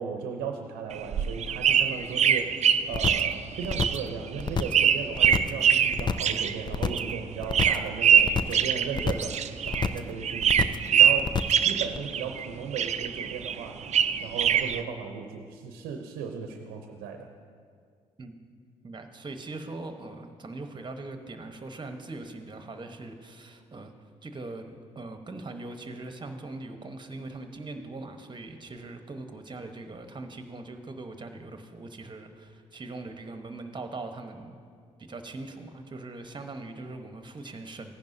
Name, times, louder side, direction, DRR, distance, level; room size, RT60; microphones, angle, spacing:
voice 1, 0.0-2.6 2.9-9.4 9.6-11.3 11.6-13.8 14.2-17.3, right 6 dB, 80° right, 4 dB, 0.7 m, -36 dB
sound 1, 0.9-10.0 10.2-12.5 12.7-14.8, right 8 dB, 45° right, 0.4 m, -24 dB
sound 2, 2.9-3.3 3.6-4.1 4.4-4.9 5.2-5.6 5.9-6.4 6.7-7.1 7.4-7.9 8.2-8.7 8.9-9.4 9.7-10.1 10.4-10.9 11.2-11.6 11.9-12.0, left 5 dB, 30° left, 0.5 m, -29 dB
voice 2, 18.8-23.9 24.2-34.6 35.0-37.9, right 2 dB, 30° right, 7 dB, 1.1 m, -41 dB
15.0 x 10.5 x 2.7 m, 2.1 s
hypercardioid pair, 45°, 16 cm